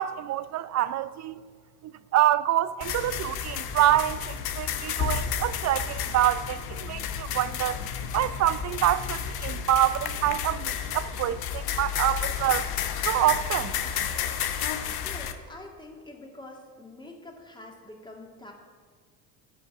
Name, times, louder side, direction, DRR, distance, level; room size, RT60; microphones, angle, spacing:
voice 1, 0.0-1.4 1.8-7.8 8.1-12.7 13.1-13.8, right 13 dB, 35° right, 0.5 m, -26 dB
sound 1, 2.8-15.3, left 8 dB, 50° left, 1.1 m, -31 dB
voice 2, 15.0-18.5, left 2 dB, 10° left, 2.5 m, -45 dB
10.5 x 5.2 x 8.0 m
hypercardioid pair, 65°, 47 cm